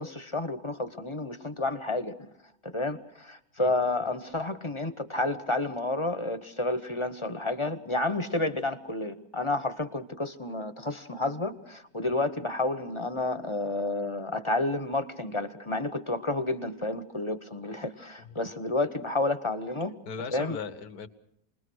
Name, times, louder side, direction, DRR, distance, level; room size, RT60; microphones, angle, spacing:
voice 1, 0.0-2.1 2.6-19.9 20.3-20.6, left 2 dB, 20° left, 10 dB, 1.0 m, -30 dB
voice 2, 20.1-21.1, left 5 dB, 90° left, 10 dB, 1.8 m, -38 dB
28.0 x 20.5 x 6.3 m, 0.75 s
omnidirectional pair, 1.6 m